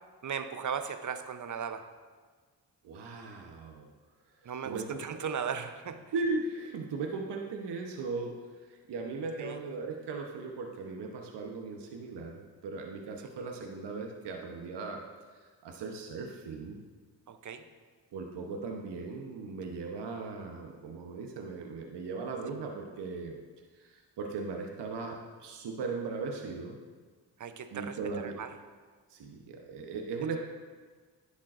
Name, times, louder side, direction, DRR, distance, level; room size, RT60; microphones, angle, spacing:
voice 1, 0.2-1.8 4.4-6.0 9.4-9.6 17.3-17.6 22.5-22.6 27.4-28.5, right 7 dB, 45° right, 9 dB, 0.8 m, -37 dB
voice 2, 2.8-3.9 4.6-5.0 6.1-8.4 8.7-15.0 15.4-16.8 18.1-23.4 23.7-26.8 27.7-28.4 29.1-30.4, right 4 dB, 70° right, 2 dB, 1.0 m, -38 dB
10.5 x 7.2 x 2.6 m, 1.5 s
supercardioid pair, 45°, 43 cm